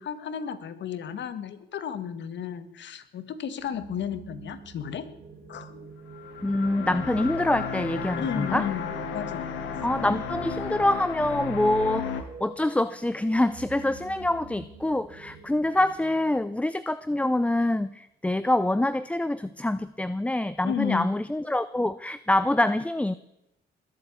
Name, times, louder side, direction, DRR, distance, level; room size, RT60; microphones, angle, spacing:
voice 1, 0.0-5.1 5.5-5.9 8.2-9.5 20.6-21.1, left 8 dB, 65° left, 12 dB, 1.6 m, -33 dB
sound 1, 3.6-16.3, right 4 dB, 45° right, 3.8 m, -46 dB
sound 2, 6.1-12.2, left 6 dB, 80° left, 1.8 m, -34 dB
voice 2, 6.4-8.7 9.8-23.1, left 1 dB, 5° left, 15 dB, 0.5 m, -25 dB
21.0 x 8.0 x 8.6 m, 0.85 s
cardioid pair, 90°, 20 cm